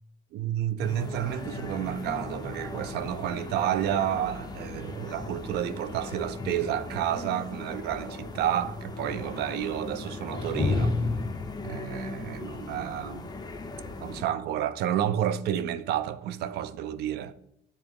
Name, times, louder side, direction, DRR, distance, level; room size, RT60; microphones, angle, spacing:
voice 1, 0.3-11.0 11.6-13.3 14.0-17.3, right 10 dB, 75° right, 0.5 m, -30 dB
sound 1, 0.8-14.2, left 3 dB, 25° left, 0.7 m, -35 dB
8.2 x 3.6 x 3.5 m
cardioid pair, 110°, 17 cm